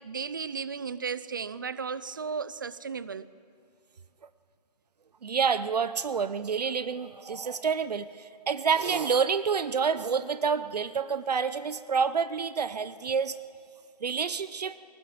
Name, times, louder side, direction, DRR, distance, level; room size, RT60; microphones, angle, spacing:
voice 1, 0.0-3.3, right 5 dB, 30° right, 0.4 m, -35 dB
voice 2, 5.2-13.3 14.0-14.8, right 6 dB, 70° right, 0.8 m, -28 dB
19.0 x 18.5 x 7.8 m
hypercardioid pair, 170°, 21 cm